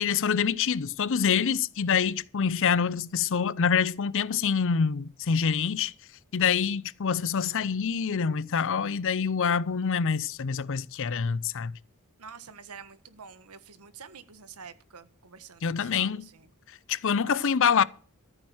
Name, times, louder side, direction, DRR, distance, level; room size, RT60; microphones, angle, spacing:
voice 1, 0.0-5.9 6.3-11.7 15.6-16.2 16.9-17.8, left 6 dB, 60° left, 0.6 m, -26 dB
voice 2, 12.2-16.5 17.2-17.6, right 6 dB, 85° right, 1.4 m, -48 dB
14.5 x 8.9 x 6.2 m
head